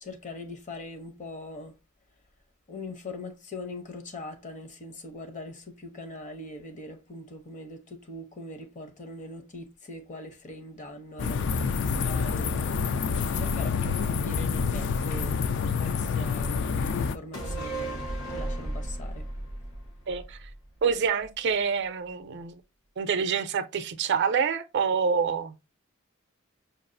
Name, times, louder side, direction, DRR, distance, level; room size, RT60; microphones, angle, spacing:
voice 1, 0.0-1.7 2.7-11.7 12.0-12.7 13.3-15.5 15.8-16.6 16.9-18.0 18.3-19.3, left 2 dB, 35° left, 0.8 m, -41 dB
sound 1, 11.2-17.2, left 5 dB, 55° left, 0.3 m, -27 dB
sound 2, 17.3-20.9 21.2-21.3, right 1 dB, 80° left, 1.3 m, -35 dB
voice 2, 20.1-20.5 20.8-22.6 23.0-25.5, right 6 dB, 55° right, 0.4 m, -27 dB
5.4 x 2.4 x 2.5 m
head